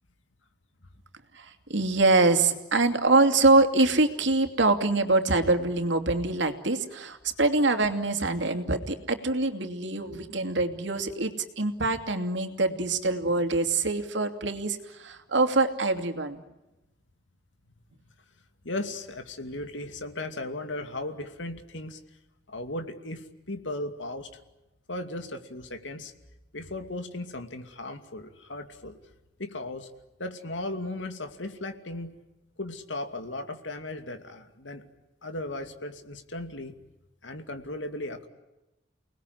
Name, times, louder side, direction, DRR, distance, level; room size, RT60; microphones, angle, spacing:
voice 1, 1.3-16.4, right 3 dB, 75° right, 6 dB, 2.8 m, -24 dB
voice 2, 18.6-22.0 22.5-24.3 24.9-26.1 26.5-29.0 29.4-29.9 30.2-32.2 32.6-34.9 35.2-36.8 37.2-38.3, left 2 dB, 85° left, 7 dB, 2.6 m, -36 dB
30.0 x 20.0 x 9.8 m, 1.0 s
head